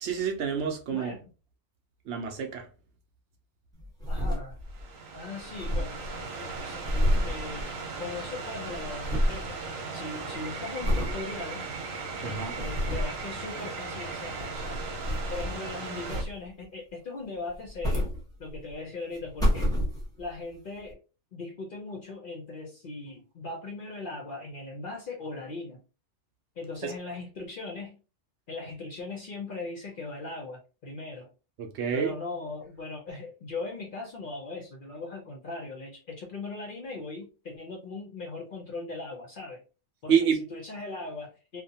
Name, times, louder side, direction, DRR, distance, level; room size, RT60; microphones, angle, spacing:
voice 1, 0.0-1.1 2.1-2.6 12.2-12.5 31.6-32.1 40.1-40.4, right 7 dB, 65° right, 0.8 m, -27 dB
voice 2, 0.9-1.3 4.1-4.6 5.1-6.8 7.2-9.6 9.9-11.6 12.2-14.8 15.3-18.1 18.4-19.7 20.2-21.0 21.3-25.8 26.6-28.0 28.5-31.3 31.9-39.6 40.0-41.6, left 3 dB, 55° left, 0.6 m, -39 dB
sound 1, 3.8-4.9 5.2-5.3 5.4-8.2 8.5-9.5 9.9-10.3 10.8-11.2 11.7-11.8 12.4-13.2 14.2-15.7 16.1-16.6 17.5-18.7 19.1-20.3 20.9-21.0, equal, 5° left, 0.9 m, -29 dB
sound 2, 4.7-16.2, right 4 dB, 85° right, 1.1 m, -38 dB
2.6 x 2.1 x 2.7 m
omnidirectional pair, 1.3 m